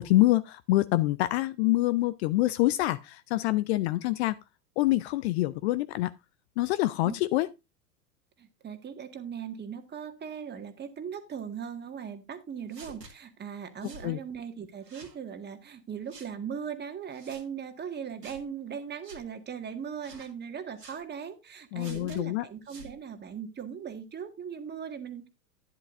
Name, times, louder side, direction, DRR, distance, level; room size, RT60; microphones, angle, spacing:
voice 1, 0.0-4.4 4.8-6.1 6.6-7.5 14.0-14.2 21.7-22.5, left 17 dB, 45° left, 0.6 m, -26 dB
voice 2, 8.4-25.3, right 7 dB, 20° right, 1.7 m, -39 dB
sound 1, 12.7-13.1 13.8-14.1 14.8-15.2 16.1-16.3 17.1-17.4 18.2-18.4 19.0-19.2 20.0-20.3 20.8-21.0 21.8-22.2 22.6-22.9, right 3 dB, 90° right, 2.4 m, -48 dB
11.5 x 10.5 x 2.6 m
figure-of-eight pair, 95°, 48 cm